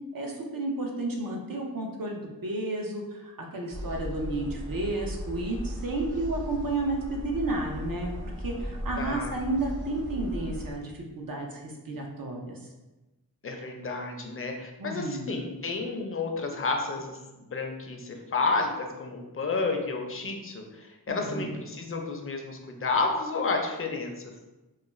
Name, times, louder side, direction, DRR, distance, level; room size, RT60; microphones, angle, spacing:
voice 1, 0.1-8.1 8.4-12.6 14.8-15.3 21.1-21.6, right 2 dB, 65° right, 1 dB, 0.6 m, -32 dB
sound 1, 3.7-10.7, equal, 35° right, 0.8 m, -37 dB
voice 2, 9.0-9.3 13.4-24.3, left 3 dB, 35° left, 3 dB, 0.4 m, -31 dB
2.4 x 2.2 x 3.0 m, 1.1 s
wide cardioid pair, 40°, 37 cm